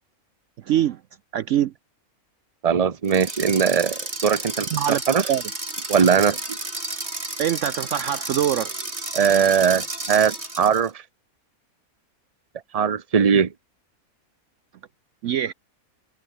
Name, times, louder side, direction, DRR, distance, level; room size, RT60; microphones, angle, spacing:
voice 1, 0.7-1.0 1.3-1.7 4.7-5.0 5.3-5.4 7.4-8.7 15.2-15.5, right 11 dB, 65° right, 0.9 m, -23 dB
voice 2, 2.6-5.3 5.9-6.6 9.1-11.0 12.7-13.5, right 7 dB, 30° right, 0.9 m, -20 dB
sound 1, 3.0-10.9, right 2 dB, 45° right, 5.8 m, -32 dB
omnidirectional pair, 1.5 m